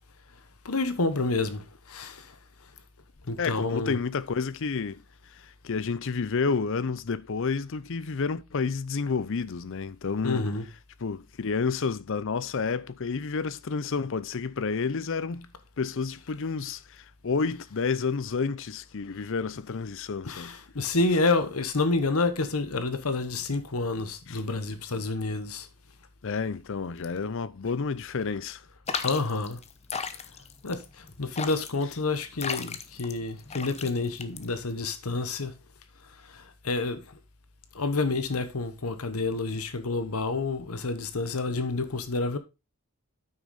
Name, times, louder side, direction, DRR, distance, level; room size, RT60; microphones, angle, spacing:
voice 1, 0.6-2.4 3.3-4.0 10.2-10.7 20.2-25.7 29.0-29.6 30.6-35.6 36.2-37.2 37.7-42.4, left 3 dB, 75° left, 1.1 m, -29 dB
voice 2, 3.4-5.0 5.4-10.4 11.0-15.5 15.8-20.5 24.3-24.4 26.2-28.6, left 5 dB, 60° left, 0.6 m, -30 dB
sound 1, 28.9-34.8, left 6 dB, 30° left, 0.8 m, -36 dB
9.2 x 6.1 x 4.0 m
head